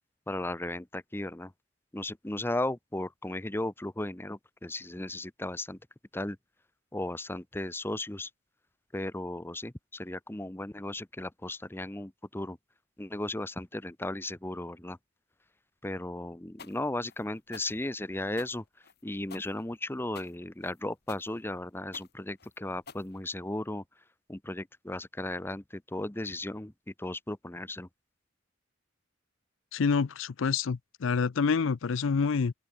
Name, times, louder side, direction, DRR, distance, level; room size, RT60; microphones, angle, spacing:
voice 1, 0.3-1.5 1.9-5.8 6.1-6.4 6.9-8.3 8.9-12.6 13.0-15.0 15.8-18.6 19.0-23.8 24.3-27.9, left 1 dB, 10° left, 0.8 m, -36 dB
sound 1, 16.6-23.7, left 5 dB, 55° left, 2.5 m, -50 dB
voice 2, 29.7-32.5, left 5 dB, 85° left, 0.5 m, -27 dB
open air
head